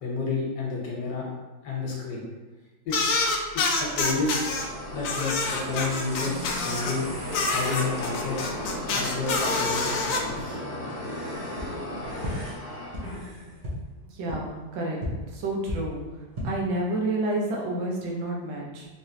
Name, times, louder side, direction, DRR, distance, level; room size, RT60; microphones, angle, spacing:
voice 1, 0.0-1.3 1.6-2.2 2.8-3.2 3.5-4.5 4.9-7.1 7.5-8.5 8.8-10.6, left 3 dB, 70° left, -3 dB, 1.5 m, -31 dB
sound 1, 2.9-4.6 5.0-7.0 7.3-10.2, left 3 dB, 85° left, 0.7 m, -27 dB
sound 2, 3.9-13.6, left 1 dB, 65° right, 1.6 m, -36 dB
sound 3, 11.5-11.6 12.2-12.3 12.9-13.0 13.6-13.7 14.3-14.4 15.0-15.1 15.6-15.7 16.2-16.4, left 1 dB, 45° right, 0.6 m, -33 dB
voice 2, 14.1-15.0 15.3-16.0 16.4-18.9, right 2 dB, 80° right, -2 dB, 1.5 m, -29 dB
3.6 x 3.2 x 2.8 m, 1.2 s
omnidirectional pair, 2.0 m